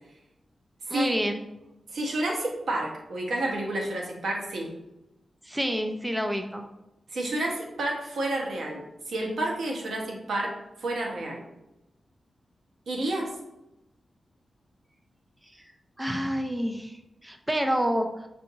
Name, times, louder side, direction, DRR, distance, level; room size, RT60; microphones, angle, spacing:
voice 1, 0.9-1.4 5.4-6.6 16.0-18.3, equal, 5° right, 5 dB, 0.3 m, -28 dB
voice 2, 1.9-4.7 7.1-10.5 10.8-11.4 12.9-13.3, right 1 dB, 85° right, -2 dB, 1.0 m, -30 dB
5.6 x 2.6 x 2.8 m, 0.91 s
wide cardioid pair, 145°, 0 cm